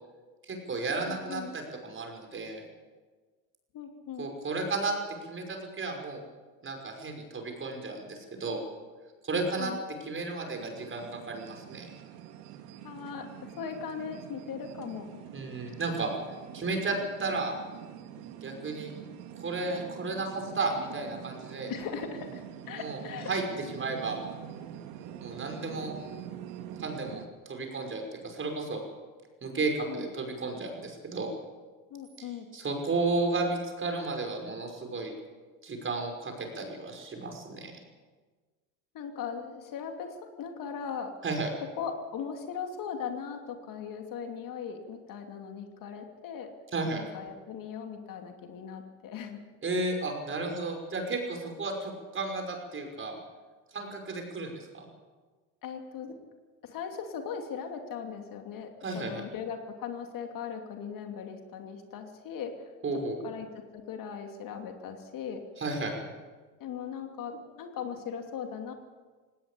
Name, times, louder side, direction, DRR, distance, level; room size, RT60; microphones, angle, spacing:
voice 1, 0.5-2.6 4.2-4.9 5.3-6.2 6.6-8.6 9.2-9.7 10.0-11.9 15.3-16.1 16.5-17.5 18.4-18.9 19.3-21.7 22.8-23.0 23.3-23.4 23.7-24.2 25.2-25.9 26.8-28.8 29.4-31.3 32.2-32.3 32.5-35.1 35.6-37.7 41.2-41.5 46.7-47.0 49.6-53.2 53.7-54.9 58.8-59.2 62.8-63.2 65.6-66.1, right 3 dB, 25° right, 3 dB, 5.7 m, -33 dB
voice 2, 1.0-1.5 3.7-4.3 9.3-9.8 12.8-15.2 15.5-15.8 21.7-23.3 29.5-30.1 31.9-32.5 38.9-41.1 41.8-46.5 46.9-49.4 55.6-56.1 56.6-62.7 63.2-63.5 63.7-65.4 66.6-68.7, left 7 dB, 45° left, 5 dB, 2.8 m, -39 dB
sound 1, 10.5-27.3, right 10 dB, 70° right, 2.2 m, -45 dB
18.5 x 18.0 x 8.5 m, 1.4 s
supercardioid pair, 100°, 44 cm